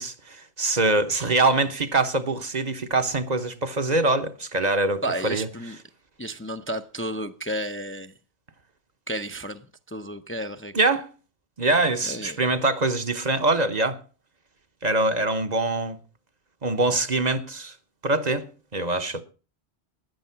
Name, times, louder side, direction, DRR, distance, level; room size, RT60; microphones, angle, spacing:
voice 1, 0.0-5.5 10.7-11.1 11.6-14.0 14.8-16.0 16.6-17.7 18.0-19.2, right 2 dB, 45° right, 1.1 m, -24 dB
voice 2, 5.0-5.8 6.2-8.1 9.1-10.7 12.1-12.4, right 1 dB, 15° left, 0.6 m, -32 dB
14.5 x 10.5 x 5.7 m
omnidirectional pair, 1.1 m